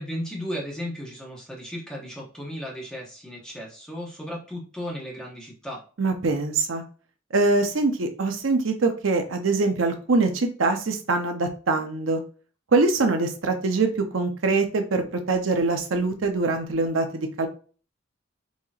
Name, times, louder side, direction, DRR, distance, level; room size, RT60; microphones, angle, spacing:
voice 1, 0.0-5.8, equal, 5° left, -3 dB, 1.0 m, -35 dB
voice 2, 6.0-6.8 7.3-12.2 12.7-17.5, right 3 dB, 80° right, 6 dB, 0.7 m, -23 dB
4.1 x 2.9 x 2.4 m, 0.38 s
head